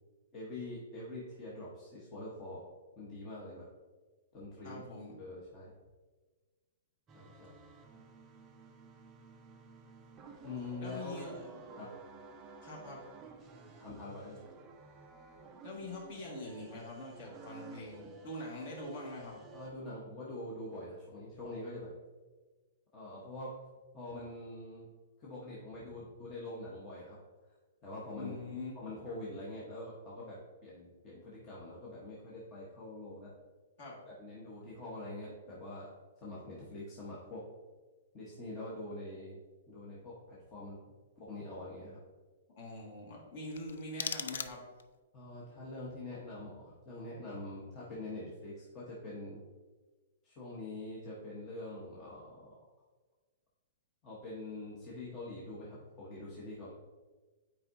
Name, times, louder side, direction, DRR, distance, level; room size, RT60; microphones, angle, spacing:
voice 1, 0.3-2.6 3.0-3.7 4.3-4.8 5.2-5.7 7.1-7.5 10.4-11.2 11.8-11.9 13.7-14.4 19.5-21.9 22.9-23.6 23.9-24.9 25.2-27.2 27.8-28.4 28.7-33.3 34.1-35.9 36.2-37.4 38.1-39.4 39.7-40.8 41.2-42.0 45.1-49.4 50.2-52.6 54.0-56.7, left 2 dB, 20° left, -6 dB, 0.9 m, -44 dB
voice 2, 4.6-5.1 10.8-11.7 12.6-13.0 15.6-19.4 28.1-28.8 33.8-34.0 42.5-44.6, left 1 dB, 35° left, -2 dB, 1.6 m, -44 dB
sound 1, 7.1-19.7, right 3 dB, 15° right, 0.5 m, -53 dB
sound 2, 43.5-45.0, left 7 dB, 75° left, 0.4 m, -40 dB
8.8 x 4.6 x 2.6 m, 1.3 s
hypercardioid pair, 175°, 0 cm